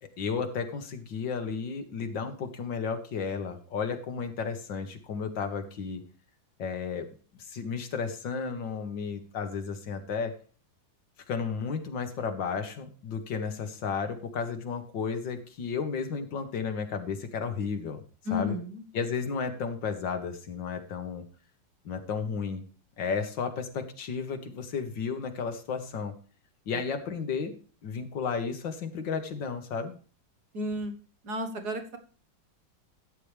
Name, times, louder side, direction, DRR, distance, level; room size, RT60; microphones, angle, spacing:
voice 1, 0.0-6.0 6.6-7.1 7.4-10.3 11.3-18.0 18.3-18.6 18.9-21.2 21.9-22.7 23.0-26.1 26.7-27.5 27.8-29.9, left 5 dB, 70° left, 6 dB, 2.1 m, -33 dB
voice 2, 18.3-18.8 26.7-26.8 30.5-30.9 31.2-32.0, left 2 dB, 55° right, 6 dB, 1.8 m, -32 dB
13.5 x 8.7 x 3.4 m, 0.39 s
omnidirectional pair, 2.1 m